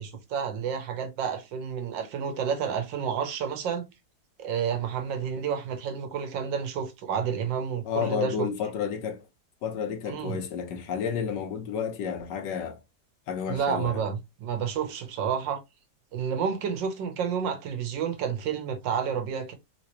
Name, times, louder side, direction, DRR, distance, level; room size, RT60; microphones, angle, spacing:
voice 1, 0.0-3.9 4.4-8.5 10.1-10.4 13.5-15.6 16.1-19.5, right 7 dB, 80° right, 1.5 m, -30 dB
voice 2, 7.8-9.3 9.6-12.8 13.3-14.0, left 7 dB, 80° left, 1.4 m, -31 dB
3.7 x 3.0 x 2.7 m
omnidirectional pair, 1.9 m